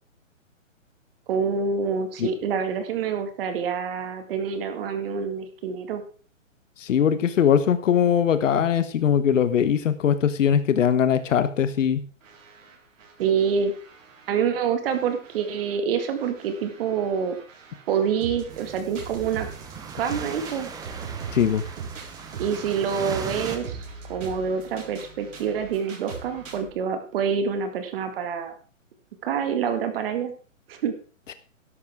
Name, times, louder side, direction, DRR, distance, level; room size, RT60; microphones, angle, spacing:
voice 1, 1.3-6.0 13.2-13.7 14.3-17.4 17.9-19.5 19.9-20.7 22.4-23.8 24.1-28.5 29.2-30.3 30.7-30.9, right 6 dB, 45° right, 7 dB, 2.0 m, -26 dB
voice 2, 6.8-12.1 21.3-21.6, left 8 dB, 70° left, 12 dB, 1.2 m, -21 dB
sound 1, 12.2-14.4 14.9-26.7, right 5 dB, 70° right, 4.4 m, -41 dB
sound 2, 18.5-23.6, right 6 dB, 10° right, 1.0 m, -39 dB
13.0 x 11.0 x 3.5 m, 0.38 s
hypercardioid pair, 145°, 40 cm